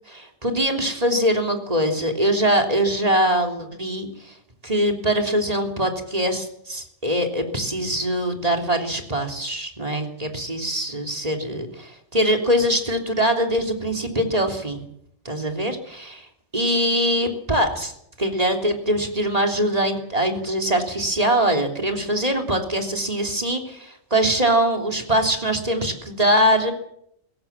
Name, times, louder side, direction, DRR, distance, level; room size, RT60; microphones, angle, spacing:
voice 1, 0.1-4.1 4.6-14.8 15.3-16.3 16.5-17.9 18.2-26.7, equal, 30° right, 3 dB, 3.4 m, -22 dB
23.0 x 17.5 x 7.4 m, 0.74 s
omnidirectional pair, 1.4 m